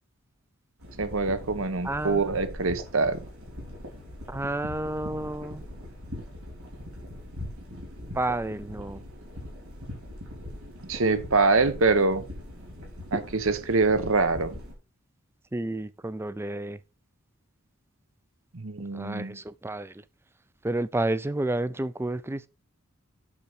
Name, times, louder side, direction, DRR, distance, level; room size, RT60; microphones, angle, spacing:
sound 1, 0.8-14.7, left 1 dB, 90° right, 3.9 m, -41 dB
voice 1, 1.0-3.2 10.9-12.2 13.1-14.5 18.5-19.4, right 3 dB, 65° right, 1.1 m, -24 dB
voice 2, 1.8-2.4 4.3-5.6 8.1-9.0 15.5-16.8 18.9-20.0 20.6-22.5, right 2 dB, 10° right, 0.4 m, -30 dB
8.5 x 6.4 x 4.4 m
head